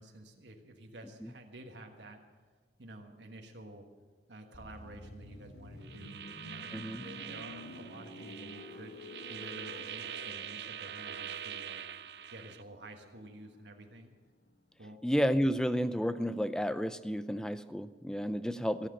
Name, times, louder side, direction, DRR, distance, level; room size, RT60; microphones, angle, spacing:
voice 1, 0.0-2.2 2.8-3.9 4.3-11.8 12.3-14.1 14.8-15.0, right 1 dB, 85° right, 4 dB, 1.5 m, -51 dB
sound 1, 4.5-14.2 14.5-14.7, left 1 dB, 75° left, 1.1 m, -50 dB
sound 2, 5.8-12.6, right 9 dB, 70° right, 0.5 m, -44 dB
voice 2, 6.7-7.0 15.0-18.9, equal, 5° left, 13 dB, 0.4 m, -31 dB
16.5 x 7.5 x 8.9 m, 1.5 s
head